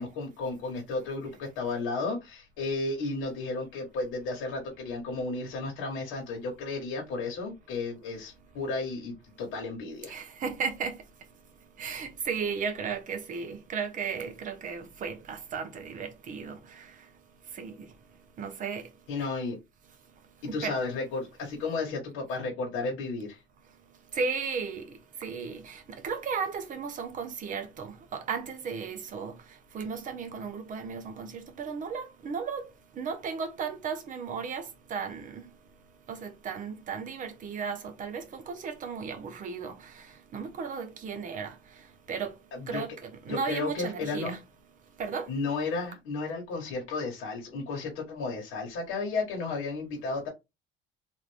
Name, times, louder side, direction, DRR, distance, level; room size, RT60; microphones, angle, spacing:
voice 1, 0.0-10.2 19.1-19.6 20.4-23.4 42.5-42.8 43.3-44.4 45.3-50.3, left 3 dB, 85° left, 1.2 m, -33 dB
voice 2, 10.1-11.0 11.8-16.6 17.6-17.8 18.4-18.8 20.6-20.8 24.2-24.9 25.2-29.3 29.7-32.7 33.0-35.3 36.1-39.7 40.3-41.5 42.1-42.3 42.7-44.4 45.0-45.3, right 5 dB, 40° right, 0.7 m, -35 dB
3.2 x 2.5 x 3.3 m
cardioid pair, 150°, 21 cm